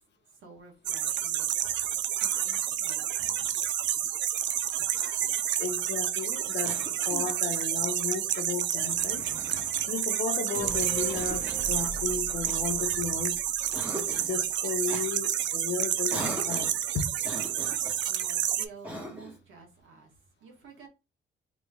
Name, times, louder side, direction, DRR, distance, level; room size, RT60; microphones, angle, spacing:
voice 1, 0.2-3.7 17.5-20.9, right 4 dB, 85° right, 1.4 m, -51 dB
sound 1, 0.9-18.7, right 11 dB, 65° right, 0.4 m, -29 dB
voice 2, 5.6-9.3 9.9-13.4 13.9-17.0, left 6 dB, 60° left, 0.8 m, -34 dB
Cough, 6.6-7.4 8.7-9.9 11.1-11.6 12.4-13.3 13.7-14.4 14.9-15.1 16.1-16.8 17.2-18.0 18.8-19.4, equal, 5° right, 1.2 m, -40 dB
sound 2, 10.5-14.1 14.4-14.5, equal, 45° right, 1.2 m, -41 dB
3.1 x 3.0 x 3.6 m
cardioid pair, 90°, 20 cm